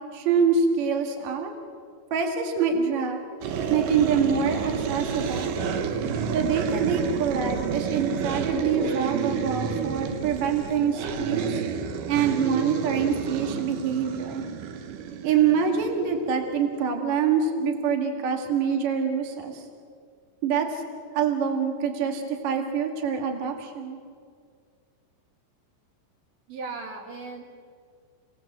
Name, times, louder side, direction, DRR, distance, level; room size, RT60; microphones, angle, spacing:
voice 1, 0.1-1.5 2.1-3.2 3.7-5.5 6.3-11.6 12.1-14.4 15.2-19.6 20.4-20.8 21.1-24.0, right 6 dB, 45° right, 3 dB, 2.9 m, -25 dB
sound 1, 3.4-16.3, right 6 dB, 85° right, 1.9 m, -30 dB
voice 2, 26.5-27.4, right 3 dB, 70° right, 2 dB, 4.6 m, -37 dB
29.5 x 18.5 x 7.7 m, 2.1 s
omnidirectional pair, 5.4 m